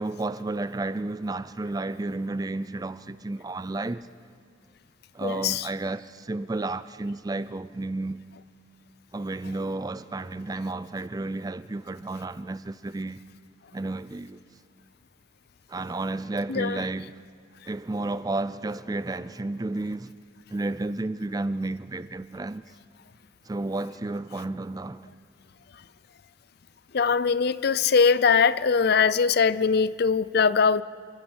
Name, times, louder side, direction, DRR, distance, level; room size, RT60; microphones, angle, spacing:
voice 1, 0.0-4.1 5.1-8.2 9.1-13.2 13.7-14.4 15.7-17.2 17.7-20.2 20.5-22.6 23.4-25.1, right 2 dB, 20° right, 0.4 m, -32 dB
voice 2, 5.2-5.7 16.5-16.8 26.9-30.8, left 5 dB, 55° left, 0.5 m, -21 dB
28.0 x 12.0 x 8.1 m
head